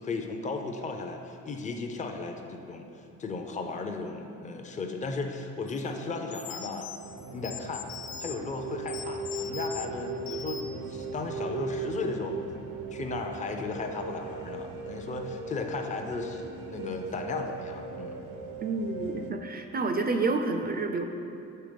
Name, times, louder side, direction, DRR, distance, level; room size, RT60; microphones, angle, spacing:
voice 1, 0.0-6.9 7.3-7.8 8.2-12.4 12.9-18.2, left 3 dB, 25° left, 4 dB, 0.5 m, -35 dB
sound 1, 5.7-5.8 6.3-8.4 8.9-9.9 10.3-10.8, left 7 dB, 65° left, 0.7 m, -41 dB
sound 2, 7.0-19.3, right 3 dB, 80° right, 0.6 m, -38 dB
voice 2, 18.6-21.0, right 3 dB, 30° right, 5 dB, 0.4 m, -29 dB
6.7 x 3.5 x 5.1 m, 2.6 s
cardioid pair, 90°, 30 cm